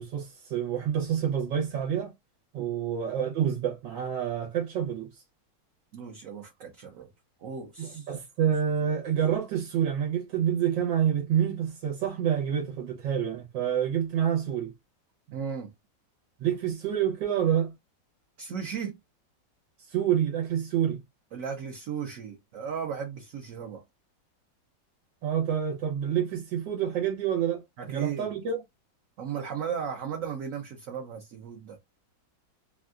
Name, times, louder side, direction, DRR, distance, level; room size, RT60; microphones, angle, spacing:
voice 1, 0.0-2.1 2.5-5.2 7.8-14.7 16.4-17.7 19.8-21.0 25.2-27.6 27.9-28.6, right 9 dB, 90° right, 1.6 m, -28 dB
voice 2, 5.9-7.1 7.4-8.2 15.3-15.7 18.4-19.0 21.3-23.8 27.8-28.3 29.2-31.8, right 7 dB, 60° right, 0.9 m, -36 dB
3.5 x 2.3 x 2.3 m
omnidirectional pair, 1.9 m